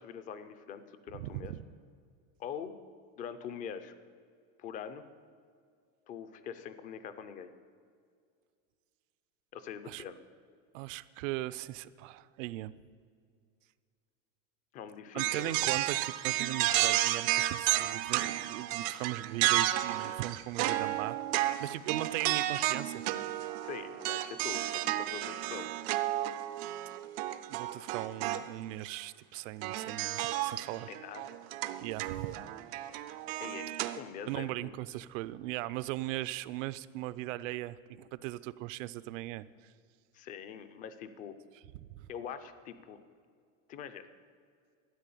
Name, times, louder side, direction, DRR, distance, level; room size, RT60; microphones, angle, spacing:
voice 1, 0.0-1.5 2.4-2.8 3.2-3.9 4.6-5.1 6.1-7.5 9.5-10.2 14.7-15.7 23.6-25.7 30.9-31.4 33.4-34.8 40.1-41.3 42.1-43.0 43.7-44.1, left 7 dB, 20° left, 12 dB, 0.4 m, -43 dB
voice 2, 1.1-1.6 9.8-10.0 10.7-12.7 15.1-21.2 21.6-23.0 27.5-30.9 31.8-32.4 34.3-39.7 41.7-42.1, right 16 dB, 75° right, 16 dB, 0.6 m, -39 dB
sound 1, 15.2-28.5 28.8-29.0 29.6-34.0, right 14 dB, 35° right, 0.4 m, -32 dB
12.5 x 10.0 x 8.4 m, 2.2 s
cardioid pair, 180°, 38 cm